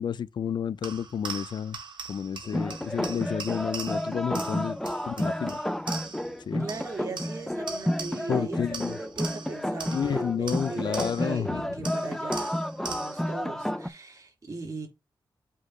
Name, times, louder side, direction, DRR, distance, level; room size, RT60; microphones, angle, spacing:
voice 1, 0.0-1.8 2.1-5.6 6.5-6.7 8.3-8.9 9.9-11.8, left 8 dB, 65° left, 0.4 m, -31 dB
sound 1, 0.8-6.4 6.7-8.4 8.7-11.4 11.8-13.3, right 5 dB, 70° right, 3.1 m, -41 dB
sound 2, 2.5-13.9, equal, 5° left, 0.6 m, -31 dB
voice 2, 6.6-12.5 12.9-14.9, right 3 dB, 40° right, 3.6 m, -39 dB
8.3 x 2.9 x 6.2 m
wide cardioid pair, 130°, 8 cm